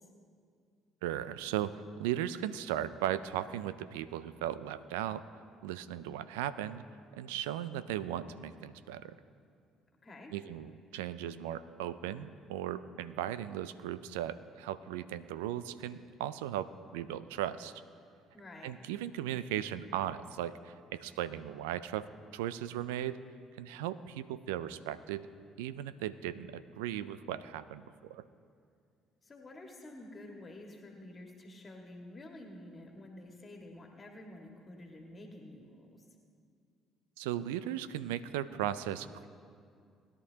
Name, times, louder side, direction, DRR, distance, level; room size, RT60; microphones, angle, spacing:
voice 1, 1.0-6.8 7.1-9.1 10.3-17.7 18.6-23.2 23.6-25.3 25.6-28.2 37.2-39.3, right 11 dB, 85° right, 14 dB, 0.4 m, -37 dB
voice 2, 18.3-18.8 29.2-36.1, left 1 dB, 35° left, 1 dB, 1.9 m, -50 dB
20.0 x 11.0 x 2.9 m, 2.3 s
hypercardioid pair, 55°, 0 cm